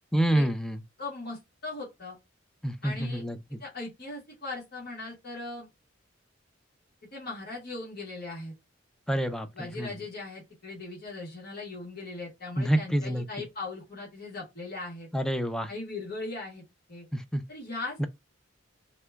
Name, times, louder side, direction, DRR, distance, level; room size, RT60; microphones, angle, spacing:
voice 1, 0.1-0.8 2.6-3.6 9.1-9.9 12.6-13.2 15.1-15.7 17.1-17.4 18.0-18.1, right 1 dB, 5° left, 0.3 m, -28 dB
voice 2, 1.0-2.2 2.8-3.2 3.6-5.7 7.1-8.5 9.5-15.1 15.7-16.6 16.9-17.0 17.5-18.1, left 3 dB, 50° left, 1.3 m, -39 dB
2.8 x 2.3 x 3.3 m
head